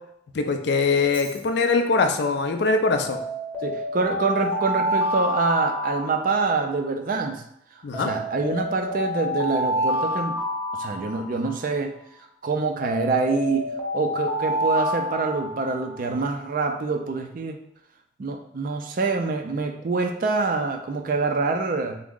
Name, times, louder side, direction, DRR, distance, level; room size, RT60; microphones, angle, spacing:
voice 1, 0.3-3.2 7.8-8.1, left 4 dB, 55° left, 6 dB, 0.4 m, -22 dB
Alarm, 1.0-1.3 3.1-6.8 7.9-11.7 12.8-16.0, equal, 10° left, 0.7 m, -28 dB
voice 2, 3.6-7.4 7.7-10.4 10.7-11.9 12.4-17.6 18.2-22.0, right 4 dB, 45° right, 4 dB, 0.3 m, -25 dB
3.5 x 2.0 x 3.6 m, 0.73 s
head